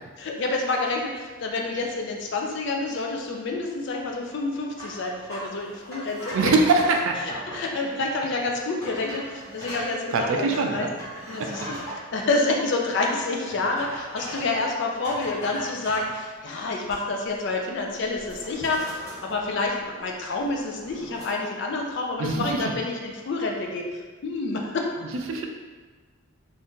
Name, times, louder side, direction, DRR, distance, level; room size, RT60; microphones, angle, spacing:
voice 1, 0.2-6.5 7.2-10.9 11.3-11.8 12.1-18.9 19.2-23.8 24.2-24.9, left 3 dB, 55° left, 1 dB, 0.4 m, -28 dB
sound 1, 4.8-7.7 8.3-8.4 8.8-9.9 10.5-12.3 13.5-14.6 15.0-16.1 16.6-17.3 17.6-17.8 18.1-20.0 20.4-21.3, equal, 15° left, 1.0 m, -39 dB
voice 2, 6.3-7.4 10.1-10.9 11.4-11.5 22.2-22.6 25.1-25.5, right 3 dB, 70° right, 3 dB, 0.4 m, -23 dB
2.7 x 2.4 x 3.5 m, 1.4 s
head